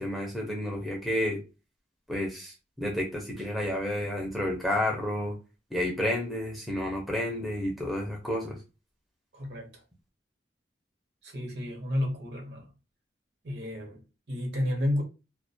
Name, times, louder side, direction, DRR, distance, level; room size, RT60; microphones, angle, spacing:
voice 1, 0.0-1.4 2.1-5.4 5.7-8.6, left 1 dB, ahead, 0.5 m, -30 dB
voice 2, 9.3-9.7 11.2-12.7 13.4-15.0, left 1 dB, 65° right, 0.8 m, -31 dB
2.3 x 2.1 x 2.6 m
head